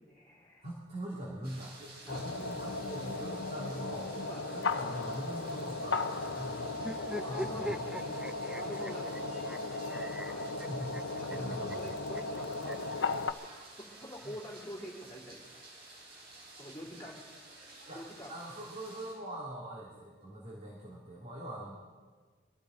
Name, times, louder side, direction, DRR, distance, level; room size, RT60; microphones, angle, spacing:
voice 1, 0.0-0.6 2.0-2.2 4.2-4.5 7.2-7.7 8.5-9.4 10.2-10.5 11.2-13.5 13.8-15.6 16.5-17.3 17.9-18.3 19.9-20.0, equal, 15° left, -4 dB, 3.1 m, -46 dB
voice 2, 0.6-4.1 4.5-7.8 10.6-11.8 17.9-18.0 18.3-21.8, right 1 dB, 35° right, -3 dB, 2.6 m, -43 dB
sound 1, 1.4-19.2, right 2 dB, 55° right, 4.6 m, -52 dB
sound 2, 2.1-13.3, left 3 dB, 65° left, 0.8 m, -36 dB
sound 3, 6.8-13.0 13.9-15.1, equal, 5° right, 0.4 m, -43 dB
23.5 x 15.5 x 3.9 m, 1.5 s
head